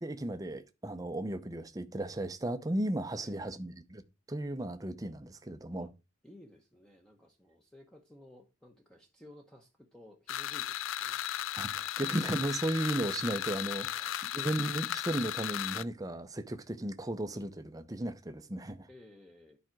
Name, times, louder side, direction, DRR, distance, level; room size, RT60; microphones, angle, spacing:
voice 1, 0.0-5.9 11.5-18.9, right 1 dB, 15° right, 0.6 m, -35 dB
voice 2, 6.2-11.2 13.8-14.1 18.9-19.6, left 1 dB, 5° left, 0.9 m, -56 dB
sound 1, 10.3-15.8, left 11 dB, 80° left, 0.4 m, -36 dB
10.0 x 5.0 x 4.5 m
head